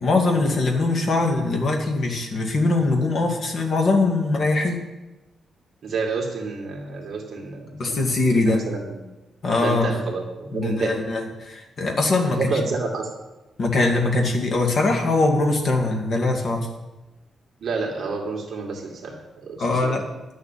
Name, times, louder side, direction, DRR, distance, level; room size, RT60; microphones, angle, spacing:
voice 1, 0.0-4.8 7.8-8.6 9.4-9.9 10.5-12.4 13.6-16.7 19.6-20.0, left 2 dB, 45° left, 2 dB, 2.1 m, -22 dB
voice 2, 5.8-9.1 9.6-11.0 12.1-13.1 17.6-20.0, right 4 dB, 50° right, -1 dB, 2.0 m, -29 dB
10.5 x 7.0 x 8.9 m, 1.1 s
wide cardioid pair, 175°, 0 cm